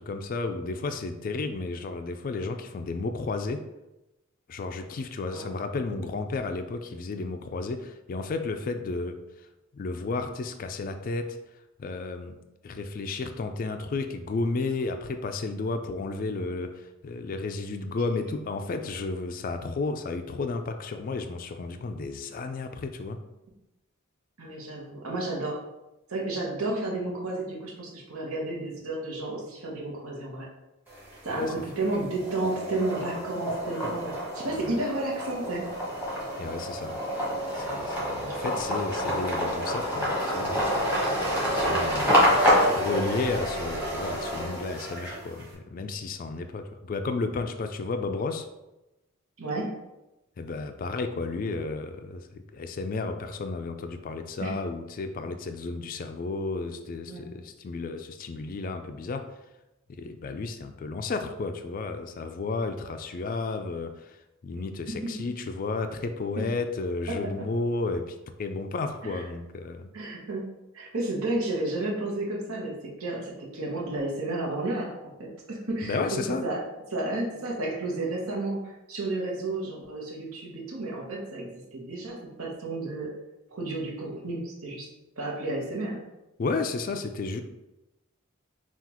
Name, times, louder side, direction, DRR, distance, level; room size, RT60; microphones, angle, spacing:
voice 1, 0.0-3.6 4.5-9.2 9.7-11.4 11.8-12.4 12.6-23.2 31.3-31.5 34.6-34.8 36.4-37.0 37.5-40.6 41.4-48.5 50.4-59.4 59.9-64.2 64.4-69.9 75.8-76.5 86.4-87.4, left 3 dB, 40° left, 7 dB, 0.3 m, -32 dB
voice 2, 24.4-25.6 26.1-30.5 31.2-35.7 49.4-49.7 54.4-54.5 57.1-57.2 64.9-65.1 66.4-66.5 67.1-67.5 69.0-69.2 69.9-70.4 70.7-76.6 76.9-83.1 83.5-84.9 85.2-86.0, right 2 dB, 85° right, -2 dB, 1.0 m, -32 dB
sound 1, 30.9-31.5 31.9-45.4, equal, 10° right, 1.0 m, -28 dB
5.8 x 2.4 x 2.9 m, 0.98 s
head